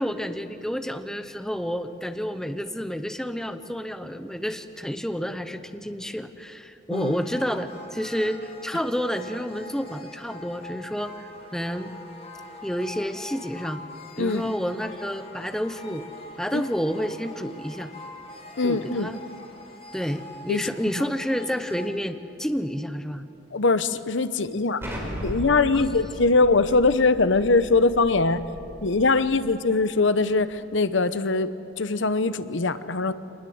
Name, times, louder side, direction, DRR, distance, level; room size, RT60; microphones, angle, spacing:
voice 1, 0.0-11.1 11.5-11.9 12.6-13.8 14.2-16.1 16.4-17.9 18.6-19.2 19.9-23.3 25.7-25.8, equal, 5° left, 8 dB, 0.9 m, -30 dB
sound 1, 6.9-21.9, left 1 dB, 30° left, 2.4 m, -44 dB
voice 2, 18.6-19.1 20.5-21.0 23.5-24.8 25.2-28.4 28.8-31.5 31.8-33.1, left 3 dB, 75° left, 13 dB, 0.9 m, -22 dB
Explosion, 24.8-29.5, equal, 15° right, 4.4 m, -37 dB
25.5 x 20.0 x 7.9 m, 2.9 s
head